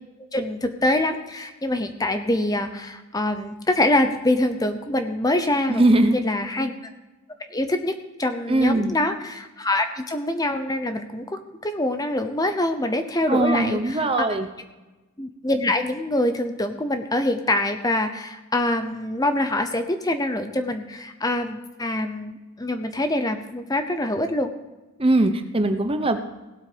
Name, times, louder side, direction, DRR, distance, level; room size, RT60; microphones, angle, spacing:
voice 1, 0.3-6.7 7.5-14.3 15.2-24.5, left 1 dB, 15° left, 8 dB, 0.7 m, -25 dB
voice 2, 5.7-6.2 8.5-9.0 13.3-14.5 25.0-26.2, right 2 dB, 25° right, 8 dB, 0.8 m, -20 dB
17.5 x 8.1 x 5.0 m, 1.1 s
head